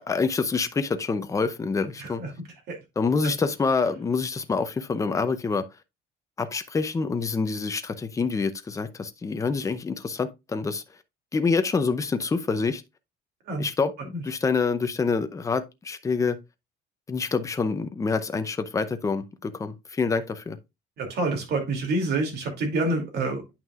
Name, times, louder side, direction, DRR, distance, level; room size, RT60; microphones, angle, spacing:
voice 1, 0.1-2.2 3.0-5.6 6.4-10.8 11.3-12.8 13.6-16.4 17.1-20.6, left 4 dB, 15° left, 0.6 m, -26 dB
voice 2, 2.0-2.3 2.7-2.8 3.2-3.3 13.5-13.7 14.1-14.2 21.0-23.4, right 2 dB, 55° right, 2.7 m, -27 dB
9.2 x 5.9 x 2.4 m
cardioid pair, 175°, 20 cm